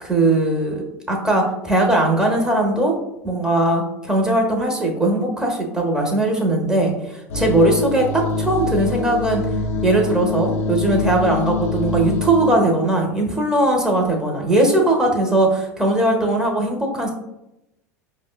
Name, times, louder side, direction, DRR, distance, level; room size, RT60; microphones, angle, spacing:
voice 1, 0.0-2.9 3.2-9.4 9.8-17.1, right 1 dB, 10° right, 0 dB, 0.9 m, -19 dB
sound 1, 7.3-12.5, left 3 dB, 70° left, 0.5 m, -25 dB
4.8 x 2.2 x 2.2 m, 0.89 s
hypercardioid pair, 90°, 8 cm